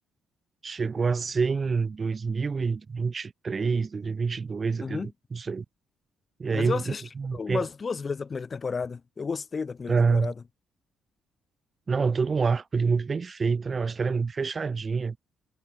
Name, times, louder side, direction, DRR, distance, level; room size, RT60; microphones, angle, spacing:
voice 1, 0.6-5.6 6.4-7.7 9.9-10.3 11.9-15.2, right 5 dB, 40° right, 4.1 m, -27 dB
voice 2, 6.5-7.0 7.3-10.3, left 5 dB, 40° left, 4.2 m, -32 dB
hypercardioid pair, 45°, 0 cm